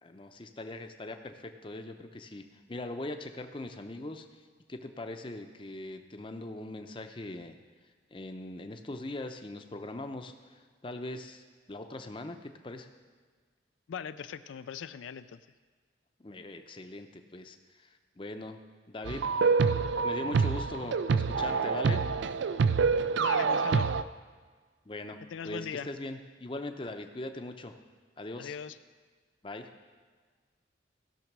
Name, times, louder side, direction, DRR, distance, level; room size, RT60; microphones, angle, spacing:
voice 1, 0.0-4.3 4.7-7.6 8.1-11.4 11.7-12.9 16.2-18.6 18.9-19.2 20.0-22.0 24.9-27.7 28.2-28.6 29.4-29.7, left 2 dB, 25° left, 6 dB, 0.6 m, -41 dB
voice 2, 13.9-15.4 23.1-23.9 25.3-25.9 28.4-28.8, left 7 dB, 85° left, 12 dB, 0.4 m, -39 dB
sound 1, 19.1-24.0, right 5 dB, 75° right, 0.4 m, -27 dB
15.5 x 6.2 x 6.1 m, 1.5 s
head